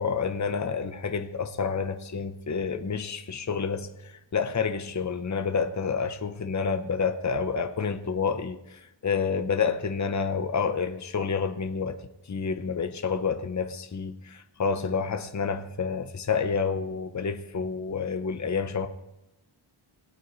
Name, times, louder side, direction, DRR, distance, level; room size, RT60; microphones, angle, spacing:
voice 1, 0.0-12.0 12.3-18.9, left 5 dB, 35° left, 0.9 m, -29 dB
19.5 x 8.7 x 3.2 m
wide cardioid pair, 75°, 50 cm